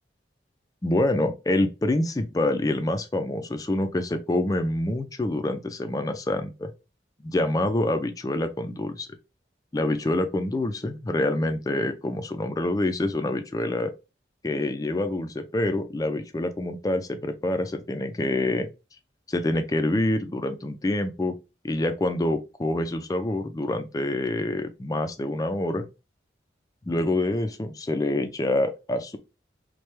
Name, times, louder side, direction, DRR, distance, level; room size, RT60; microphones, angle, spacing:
voice 1, 0.8-6.7 7.2-9.1 9.7-13.9 14.4-18.7 19.3-21.3 21.6-25.9 26.9-29.2, left 1 dB, 20° left, 0.3 m, -26 dB
3.2 x 2.2 x 3.0 m
head